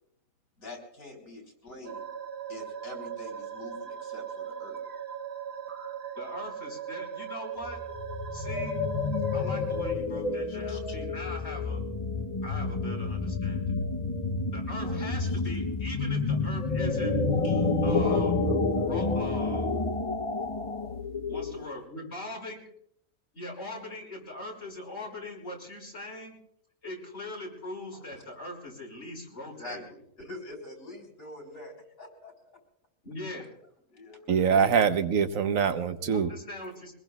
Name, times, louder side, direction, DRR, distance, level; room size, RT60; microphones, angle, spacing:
voice 1, 0.6-2.1 2.5-4.8 10.5-11.0 15.2-15.4 17.4-17.8 27.9-28.0 29.6-31.7 32.0-32.3 33.9-34.7, left 2 dB, 75° left, 1 dB, 4.3 m, -45 dB
sound 1, 1.8-9.9, right 8 dB, 50° right, 1.4 m, -39 dB
voice 2, 6.2-7.8 8.3-8.8 9.3-11.8 12.4-13.6 14.5-17.2 17.8-19.7 21.3-22.6 23.3-26.4 26.8-29.8 33.0-33.5 36.0-36.9, left 1 dB, 50° left, -2 dB, 5.8 m, -41 dB
sound 2, 7.6-21.8, left 3 dB, 30° left, 0.7 m, -29 dB
voice 3, 34.3-36.3, right 7 dB, 80° right, 9 dB, 1.3 m, -24 dB
24.0 x 20.0 x 2.4 m, 0.69 s
omnidirectional pair, 1.4 m